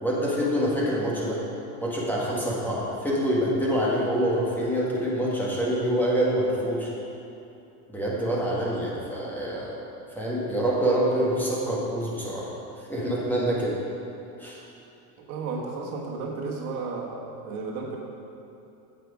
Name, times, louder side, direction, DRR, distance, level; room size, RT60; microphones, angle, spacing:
voice 1, 0.0-1.4 1.8-6.9 7.9-9.8 10.1-12.5 12.9-13.7 14.4-14.6, equal, 5° left, -6 dB, 1.5 m, -26 dB
voice 2, 15.3-17.2 17.4-18.0, right 4 dB, 65° right, -1 dB, 1.5 m, -33 dB
7.7 x 7.7 x 5.0 m, 2.8 s
supercardioid pair, 150°, 46 cm